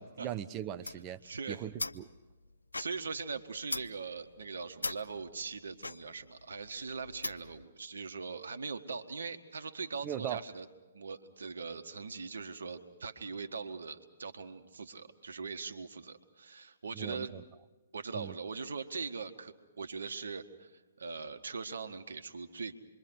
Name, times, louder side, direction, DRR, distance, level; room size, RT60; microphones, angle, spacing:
voice 1, 0.0-1.2 1.5-2.1 10.0-10.4 16.9-17.4 18.1-18.3, right 10 dB, 25° right, 11 dB, 0.7 m, -39 dB
sound 1, 0.7-7.6, left 2 dB, 85° left, 0.7 m, -42 dB
voice 2, 1.2-1.7 2.8-10.7 10.9-17.3 17.9-22.8, right 4 dB, 70° right, 9 dB, 1.5 m, -41 dB
27.0 x 23.0 x 6.3 m, 1.2 s
figure-of-eight pair, 130°, 0 cm